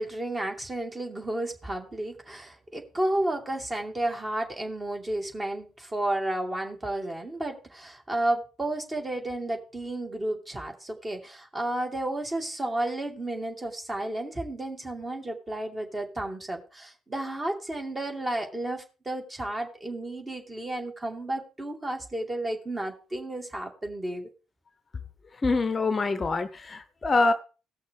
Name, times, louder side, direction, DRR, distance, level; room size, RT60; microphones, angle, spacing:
voice 1, 0.0-24.3, right 1 dB, 20° right, 2.5 m, -32 dB
voice 2, 25.4-27.3, left 3 dB, 30° left, 0.8 m, -25 dB
18.0 x 6.3 x 3.6 m
figure-of-eight pair, 50°, 0 cm